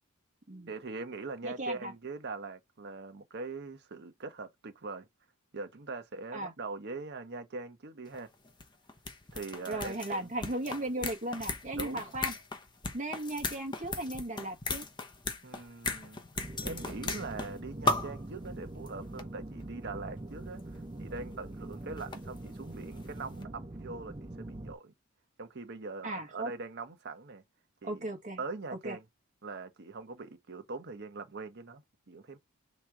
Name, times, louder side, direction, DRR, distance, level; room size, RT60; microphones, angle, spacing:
voice 1, 0.7-5.1 5.5-8.3 9.3-10.4 11.8-12.0 15.4-16.2 16.6-24.9 25.4-27.4 27.8-28.0 28.4-29.0 29.4-32.4, right 3 dB, 50° right, 0.8 m, -42 dB
voice 2, 1.4-1.9 6.3-6.5 9.7-12.3 12.9-14.8 26.0-26.5 27.8-28.4 28.7-29.0, right 1 dB, 35° right, 1.3 m, -36 dB
sound 1, 8.1-8.2 8.5-17.6 17.9-18.2 18.9-19.0 19.2-19.3 20.6-20.7 21.7-23.1 23.4-23.5, left 3 dB, 20° left, 0.7 m, -36 dB
sound 2, 16.4-24.8, right 1 dB, 20° right, 0.5 m, -43 dB
3.6 x 3.0 x 4.7 m
head